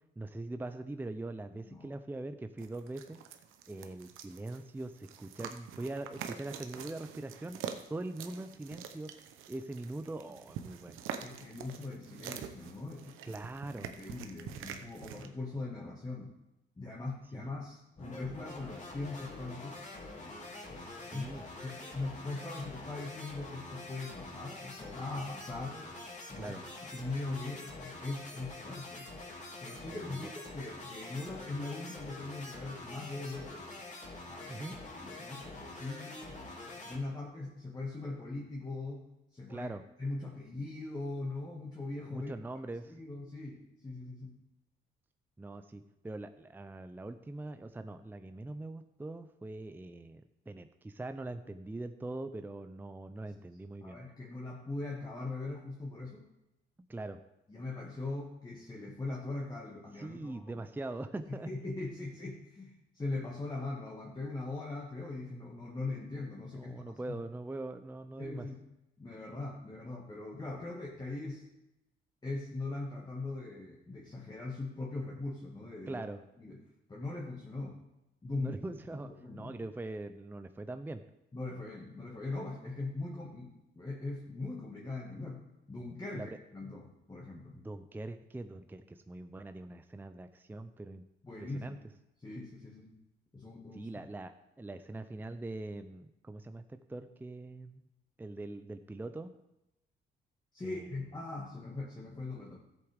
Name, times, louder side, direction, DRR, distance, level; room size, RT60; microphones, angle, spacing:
voice 1, 0.2-3.2 3.7-9.1 9.5-11.0 13.2-13.9 17.3-17.5 21.0-21.4 26.4-26.6 29.9-30.3 34.5-34.8 39.5-39.8 42.1-42.9 45.4-54.0 56.9-57.2 60.0-61.5 66.5-68.5 75.9-76.2 78.4-81.0 86.1-86.4 87.6-91.0 91.4-91.8 93.7-97.9 98.2-99.3 100.6-101.0, right 2 dB, 10° right, 9 dB, 0.5 m, -42 dB
Dog gnawing a bone, 2.6-15.3, right 8 dB, 90° right, 0.9 m, -46 dB
voice 2, 11.2-13.1 13.8-16.4 16.8-19.8 20.7-21.3 21.6-25.9 26.3-26.6 26.8-29.1 29.6-33.7 34.3-36.4 36.8-39.1 39.3-39.7 40.0-42.3 42.9-44.4 53.8-56.3 57.5-60.6 61.3-66.7 67.1-67.2 68.2-68.6 69.0-71.5 72.2-76.0 76.4-76.6 76.9-77.8 78.2-78.5 78.9-79.5 81.3-87.6 91.2-91.8 92.2-92.9 93.3-93.9 100.5-102.6, left 2 dB, 20° left, -3 dB, 1.8 m, -41 dB
sound 1, 18.0-37.0, left 2 dB, 35° left, 2.5 m, -46 dB
14.0 x 8.0 x 3.5 m, 0.90 s
cardioid pair, 90°, 20 cm